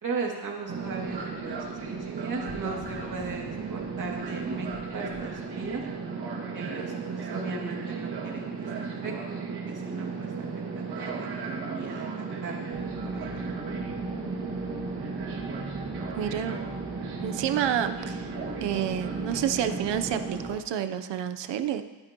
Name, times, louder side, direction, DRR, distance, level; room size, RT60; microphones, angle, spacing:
voice 1, 0.0-5.8 6.4-9.4 9.7-12.8 13.0-13.4, right 4 dB, 50° right, -1 dB, 2.5 m, -37 dB
sound 1, 0.7-5.9, left 3 dB, 70° left, 2.3 m, -49 dB
Fixed-wing aircraft airplane, 0.7-20.5, right 5 dB, 65° right, 2.2 m, -35 dB
sound 2, 12.7-20.6, equal, 5° right, 0.9 m, -40 dB
voice 2, 16.2-16.6 17.2-18.3 18.6-21.8, right 10 dB, 85° right, 9 dB, 0.8 m, -29 dB
21.0 x 9.8 x 3.0 m, 1.2 s
wide cardioid pair, 155°, 42 cm